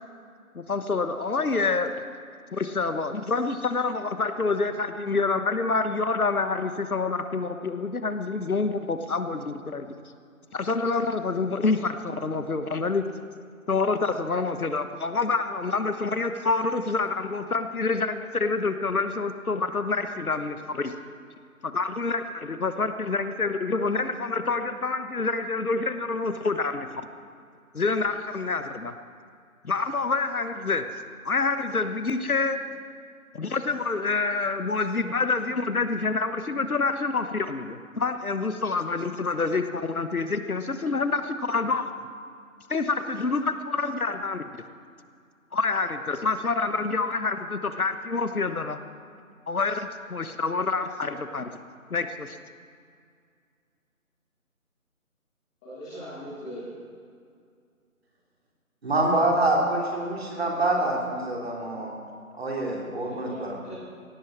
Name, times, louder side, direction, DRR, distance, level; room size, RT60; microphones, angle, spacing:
voice 1, 0.5-1.9 2.5-9.9 10.5-13.0 13.7-20.9 21.6-26.9 27.7-28.9 29.6-30.8 31.2-32.6 33.3-41.8 42.7-44.4 45.5-48.8 49.5-51.5 51.9-52.4, left 4 dB, 75° left, 9 dB, 1.2 m, -27 dB
voice 2, 55.6-56.6 63.0-63.7, equal, 5° left, -15 dB, 1.3 m, -40 dB
voice 3, 58.8-61.9 62.4-63.6, right 2 dB, 45° right, -2 dB, 3.3 m, -26 dB
17.0 x 8.6 x 7.4 m, 2.2 s
figure-of-eight pair, 160°, 44 cm